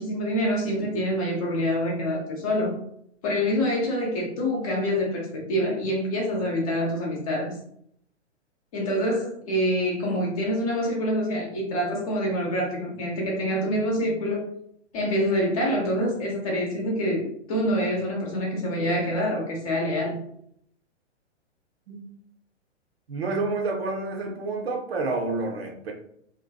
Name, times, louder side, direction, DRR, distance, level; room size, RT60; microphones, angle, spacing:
voice 1, 0.0-2.8 3.2-7.5 8.7-14.5 14.9-20.2, equal, 30° left, -1 dB, 0.6 m, -26 dB
voice 2, 23.1-25.9, right 3 dB, 55° right, 2 dB, 0.6 m, -29 dB
2.5 x 2.2 x 2.2 m, 0.69 s
figure-of-eight pair, 115°, 36 cm